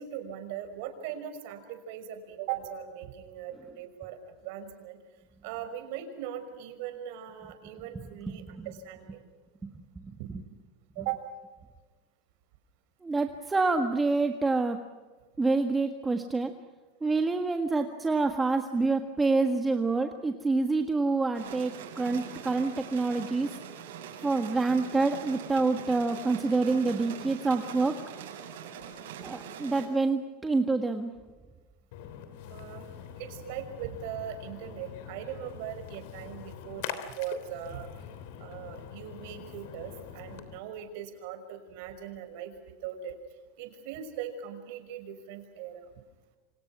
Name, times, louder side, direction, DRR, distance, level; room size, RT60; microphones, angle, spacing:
voice 1, 0.0-5.0 5.4-9.2 10.2-10.3 11.0-11.2 32.5-32.9 33.2-37.9 38.4-43.2 43.6-45.9, right 10 dB, 60° right, 7 dB, 5.7 m, -39 dB
voice 2, 7.9-8.7 9.6-10.0 10.3-10.4 13.0-14.8 15.4-16.5 17.0-23.5 24.2-27.9 29.2-31.1, right 3 dB, 10° right, 5 dB, 1.6 m, -27 dB
sound 1, 21.3-29.9, right 8 dB, 85° right, 7.7 m, -43 dB
Splash splatter, 31.9-40.6, left 9 dB, 65° left, 3.2 m, -44 dB
28.5 x 26.5 x 6.2 m, 1.3 s
supercardioid pair, 145°, 0 cm